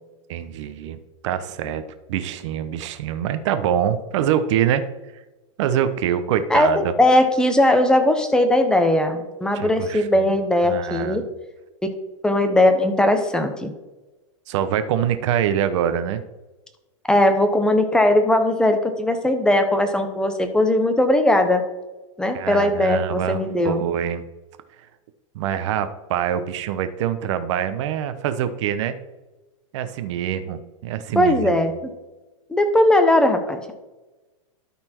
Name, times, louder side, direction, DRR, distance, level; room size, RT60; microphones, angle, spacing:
voice 1, 0.3-1.0 1.2-1.8 2.1-4.8 5.6-6.9 9.5-10.3 10.6-11.3 14.5-16.2 22.3-24.2 25.3-29.0 29.7-31.5, right 9 dB, 60° right, 11 dB, 0.9 m, -24 dB
voice 2, 7.0-11.3 12.2-13.7 17.1-21.6 22.2-23.8 31.1-31.7 32.5-33.7, left 1 dB, 5° left, 7 dB, 0.9 m, -19 dB
12.5 x 4.4 x 4.4 m, 1.1 s
hypercardioid pair, 135°, 17 cm